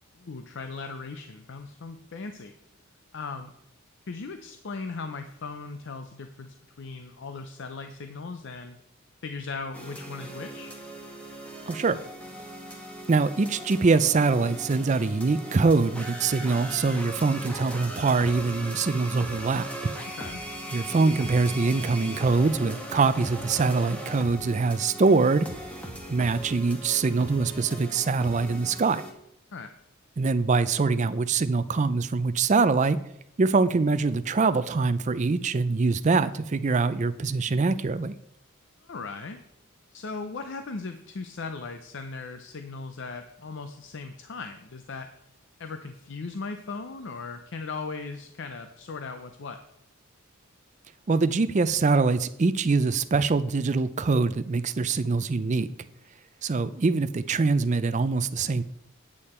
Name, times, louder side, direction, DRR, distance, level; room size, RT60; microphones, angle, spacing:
voice 1, 0.2-2.5 3.1-3.5 4.1-8.8 9.2-10.7 20.1-20.4 29.5-29.7 38.8-39.4 39.9-45.1 45.6-49.6, left 4 dB, 55° left, 8 dB, 0.6 m, -38 dB
sound 1, 9.7-29.1, right 1 dB, 5° left, 1.2 m, -39 dB
voice 2, 11.7-12.0 13.1-19.7 20.7-25.5 26.1-29.0 30.2-33.0 33.4-38.1 51.1-55.7 56.4-58.6, right 4 dB, 35° right, 12 dB, 0.4 m, -24 dB
8.6 x 8.5 x 4.3 m, 0.79 s
head